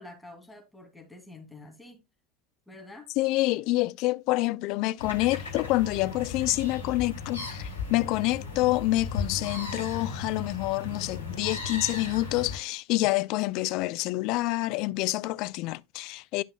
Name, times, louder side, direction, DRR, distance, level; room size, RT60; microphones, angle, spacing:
voice 1, 0.0-2.0 2.7-3.1, left 2 dB, 5° left, 2.8 m, -47 dB
voice 2, 3.2-16.4, left 19 dB, 55° left, 0.3 m, -27 dB
sound 1, 5.0-12.6, left 4 dB, 85° left, 1.8 m, -36 dB
11.0 x 5.9 x 2.3 m
figure-of-eight pair, 75°, 0 cm